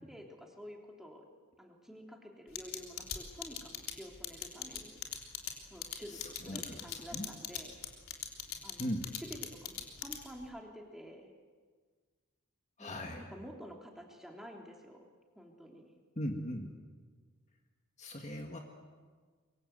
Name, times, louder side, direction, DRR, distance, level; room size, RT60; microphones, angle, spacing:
voice 1, 0.0-1.3 1.6-5.0 5.7-7.8 8.6-8.9 9.2-11.3 12.8-15.1 15.3-16.0, equal, ahead, 1 dB, 3.1 m, -50 dB
sound 1, 2.5-10.4, left 10 dB, 65° left, 3.5 m, -40 dB
voice 2, 6.1-7.3 8.8-9.1 12.8-13.2 16.2-16.7 18.0-18.6, equal, 30° left, 2 dB, 1.9 m, -39 dB
24.5 x 24.0 x 8.0 m, 1.6 s
head